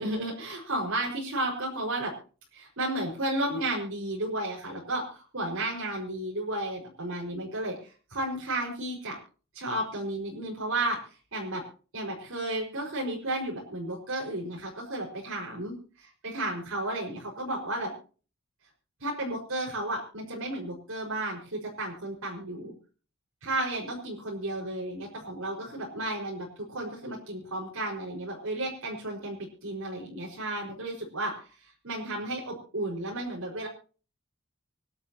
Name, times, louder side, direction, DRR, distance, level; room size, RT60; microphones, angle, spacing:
voice 1, 0.0-2.1 2.5-9.2 9.5-11.6 11.9-15.7 16.2-17.9 19.0-22.7 23.4-33.7, right 1 dB, 75° right, -2 dB, 5.2 m, -33 dB
25.5 x 11.5 x 2.9 m, 0.38 s
head